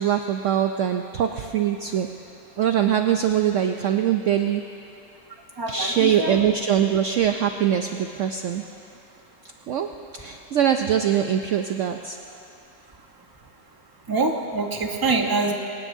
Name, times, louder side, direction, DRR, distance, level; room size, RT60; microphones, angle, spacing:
voice 1, 0.0-2.1 2.6-4.6 5.7-8.6 9.7-12.2, right 9 dB, 75° right, 6 dB, 0.7 m, -23 dB
voice 2, 5.6-6.4 14.1-15.5, right 3 dB, 20° right, 2 dB, 0.7 m, -24 dB
23.5 x 19.5 x 2.7 m, 2.7 s
omnidirectional pair, 1.9 m